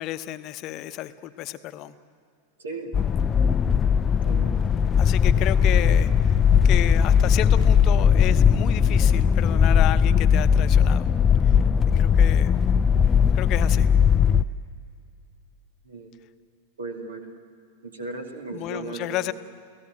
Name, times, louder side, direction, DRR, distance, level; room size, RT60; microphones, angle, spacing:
voice 1, 0.0-1.9 5.0-6.4 6.6-11.1 12.0-12.6 13.3-13.9 18.5-19.3, left 13 dB, 40° left, 12 dB, 0.9 m, -32 dB
sound 1, 2.9-14.4, left 7 dB, 20° left, 0.5 m, -19 dB
voice 2, 4.2-4.6 15.9-16.1 16.8-17.3 17.8-19.3, right 3 dB, 70° right, 4 dB, 2.6 m, -36 dB
29.5 x 17.5 x 9.0 m, 2.3 s
figure-of-eight pair, 90°, 0 cm